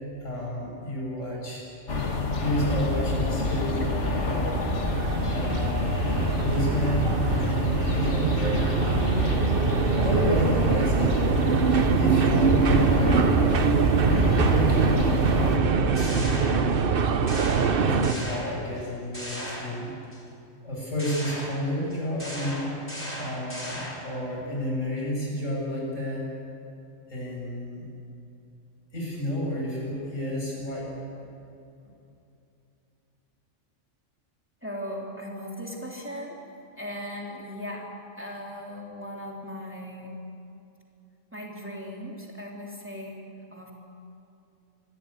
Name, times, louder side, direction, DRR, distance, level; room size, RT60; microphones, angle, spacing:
voice 1, 0.2-1.6 2.4-4.6 5.3-6.1 6.4-9.1 10.0-11.6 11.9-13.7 14.4-16.8 17.3-19.9 20.6-22.7 23.2-26.3 27.1-27.8 28.9-30.9, left 1 dB, 85° left, -3 dB, 7.5 m, -31 dB
sound 1, 1.9-15.6, left 2 dB, 65° left, 2.3 m, -27 dB
sound 2, 4.9-18.1, right 6 dB, 50° right, 1.0 m, -24 dB
sound 3, 15.9-16.9 17.3-18.8 19.1-20.2 21.0-24.2, equal, 10° left, 5.5 m, -37 dB
voice 2, 34.6-36.4 36.8-40.2 41.3-43.3 43.5-43.7, equal, 10° right, -2 dB, 3.1 m, -38 dB
25.5 x 13.5 x 9.9 m, 2.7 s
omnidirectional pair, 1.3 m